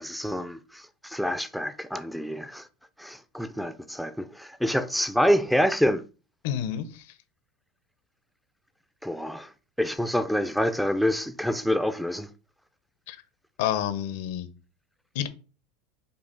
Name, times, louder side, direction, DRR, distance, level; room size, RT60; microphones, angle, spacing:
voice 1, 0.0-2.7 3.0-6.0 9.0-9.5 9.8-12.3, equal, ahead, 0.4 m, -27 dB
voice 2, 6.4-7.0 13.1-13.2 13.6-14.5 15.1-15.3, left 10 dB, 70° left, 0.6 m, -29 dB
5.3 x 2.4 x 3.8 m
supercardioid pair, 125°, 0 cm